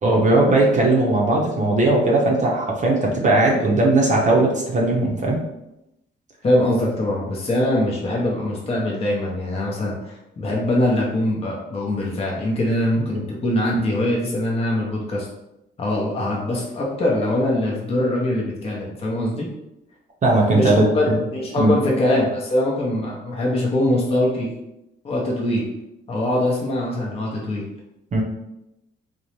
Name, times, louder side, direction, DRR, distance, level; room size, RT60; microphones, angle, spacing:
voice 1, 0.0-5.4 13.0-13.1 20.2-21.2 21.6-21.7 28.1-28.2, right 2 dB, 40° right, -1 dB, 0.6 m, -18 dB
voice 2, 6.4-15.3 15.8-19.5 20.5-24.5 25.0-25.7 26.1-27.6, left 1 dB, 30° left, -3 dB, 0.6 m, -22 dB
2.6 x 2.1 x 3.0 m, 0.89 s
cardioid pair, 90°, 20 cm